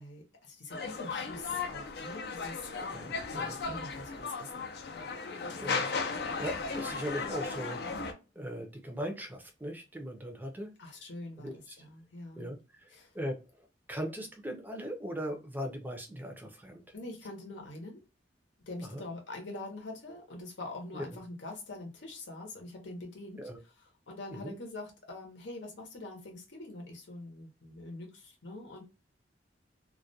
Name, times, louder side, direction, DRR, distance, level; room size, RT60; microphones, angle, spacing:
voice 1, 0.0-3.0 3.3-4.5 5.8-5.9 10.8-12.5 12.9-13.1 16.9-18.0 18.7-28.8, left 2 dB, 85° left, 2 dB, 0.8 m, -44 dB
sound 1, 0.7-8.1, left 4 dB, 60° left, 0.4 m, -36 dB
voice 2, 2.9-3.6 5.6-5.8 6.4-8.0 8.4-10.7 11.4-11.8 12.4-12.9 13.1-13.4 13.9-16.8 18.9-19.0 20.9-21.0 23.4-23.6 24.3-24.5, equal, 10° right, 3 dB, 0.5 m, -39 dB
2.3 x 2.1 x 2.6 m, 0.30 s
head